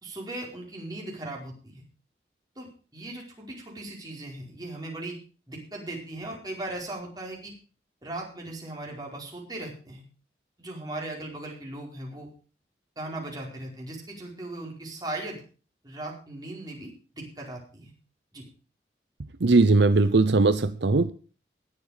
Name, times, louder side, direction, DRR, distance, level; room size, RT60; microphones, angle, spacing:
voice 1, 0.0-1.8 2.5-2.7 2.9-5.2 5.5-7.5 8.0-10.0 10.6-12.3 13.0-15.4 15.8-16.9 17.1-17.9 18.3-18.4, right 2 dB, 20° right, -2 dB, 4.8 m, -38 dB
voice 2, 19.4-21.1, right 3 dB, 75° right, 12 dB, 0.7 m, -19 dB
20.0 x 7.4 x 5.1 m, 0.37 s
head